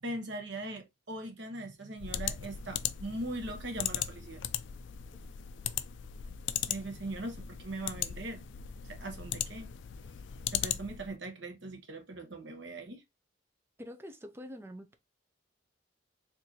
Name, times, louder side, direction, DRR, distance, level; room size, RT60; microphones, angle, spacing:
voice 1, 0.0-4.4 6.7-8.4 8.8-9.7 10.5-13.0, right 2 dB, 65° right, 1.0 m, -40 dB
sound 1, 2.0-11.1, left 10 dB, 70° left, 0.4 m, -38 dB
voice 2, 13.8-15.0, equal, 15° right, 0.5 m, -45 dB
4.5 x 2.6 x 2.8 m
head